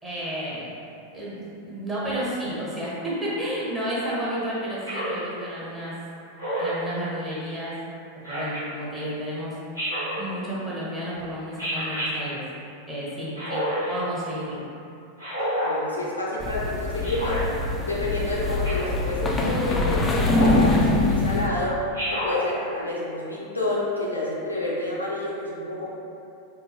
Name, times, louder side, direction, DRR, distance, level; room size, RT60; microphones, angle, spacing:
voice 1, 0.0-0.7 1.1-6.0 6.6-7.8 8.1-9.6 10.2-12.4 12.9-14.6, equal, 15° right, -8 dB, 0.9 m, -31 dB
Speech synthesizer, 4.9-5.2 6.4-6.9 8.2-8.6 9.8-10.2 11.6-12.1 13.4-13.9 15.2-15.7 17.0-17.4 18.6-19.0 20.3-20.7 21.9-22.4, equal, 75° right, 1.1 m, -28 dB
voice 2, 15.6-17.4 17.8-21.8 22.1-25.9, left 2 dB, 85° left, -6 dB, 0.5 m, -29 dB
sound 1, 16.4-21.5, left 2 dB, 15° left, 0.3 m, -24 dB
3.6 x 2.0 x 2.8 m, 2.6 s
figure-of-eight pair, 90°, 0 cm